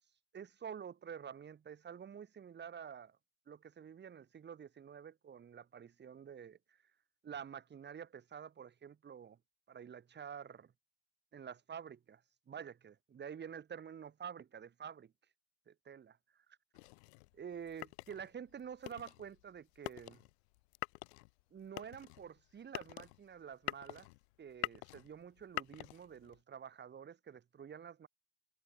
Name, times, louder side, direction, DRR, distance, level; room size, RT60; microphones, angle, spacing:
voice 1, 0.3-3.2 3.5-6.8 7.2-9.4 9.7-10.7 11.3-12.2 12.5-15.1 15.7-16.1 17.3-20.2 21.5-24.1 24.4-28.1, right 7 dB, 20° right, 6.1 m, -49 dB
sound 1, 16.7-26.4, left 26 dB, 45° left, 1.1 m, -46 dB
figure-of-eight pair, 90°, 48 cm